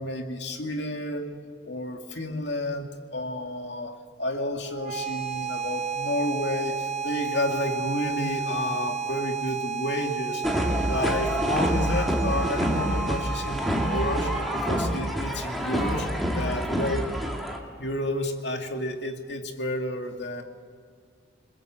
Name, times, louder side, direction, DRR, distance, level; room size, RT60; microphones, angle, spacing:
voice 1, 0.0-1.4 1.6-10.6 10.9-16.1 16.3-17.1 17.8-20.4, left 1 dB, 65° left, 4 dB, 2.4 m, -31 dB
sound 1, 4.7-15.7, right 6 dB, 35° right, 1.1 m, -33 dB
sound 2, 10.4-17.6, equal, ahead, 2.4 m, -27 dB
28.0 x 21.5 x 7.8 m, 2.1 s
head